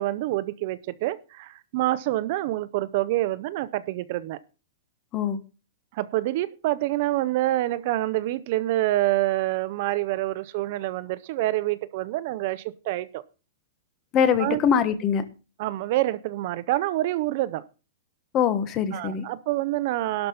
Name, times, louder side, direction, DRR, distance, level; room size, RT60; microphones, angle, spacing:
voice 1, 0.0-4.4 5.9-13.2 14.4-14.6 15.6-17.6 18.9-20.3, right 16 dB, 40° right, 17 dB, 0.6 m, -27 dB
voice 2, 14.1-15.2 18.3-19.3, left 8 dB, 20° left, 13 dB, 1.2 m, -23 dB
12.0 x 5.7 x 6.9 m, 0.33 s
supercardioid pair, 175°, 0 cm